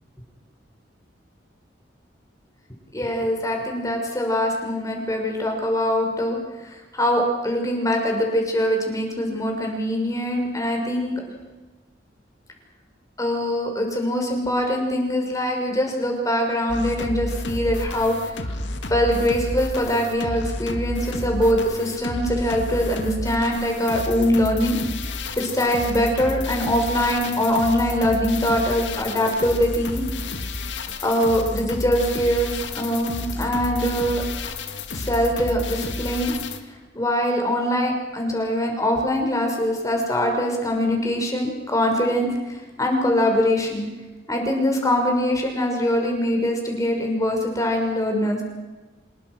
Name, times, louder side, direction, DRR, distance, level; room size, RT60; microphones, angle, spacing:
voice 1, 2.9-6.4 6.7-11.1 13.2-18.6 18.8-24.8 25.4-30.0 31.0-34.2 34.9-36.3 36.9-43.9 44.3-48.4, equal, 20° left, 2 dB, 6.1 m, -23 dB
sound 1, 16.7-36.6, left 2 dB, 80° left, 2.2 m, -31 dB
26.5 x 22.5 x 6.3 m, 1.2 s
head